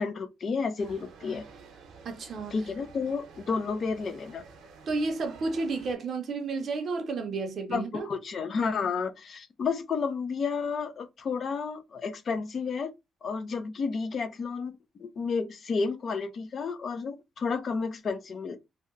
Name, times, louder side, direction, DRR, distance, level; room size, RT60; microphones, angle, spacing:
voice 1, 0.0-1.4 2.5-4.4 7.7-12.9 13.2-14.7 15.0-18.6, left 5 dB, 40° left, 0.4 m, -31 dB
sound 1, 0.8-5.9, right 5 dB, 80° right, 0.7 m, -50 dB
voice 2, 2.0-2.7 4.9-8.1, right 3 dB, 45° right, 0.6 m, -32 dB
2.7 x 2.1 x 3.6 m
cardioid pair, 170°, 0 cm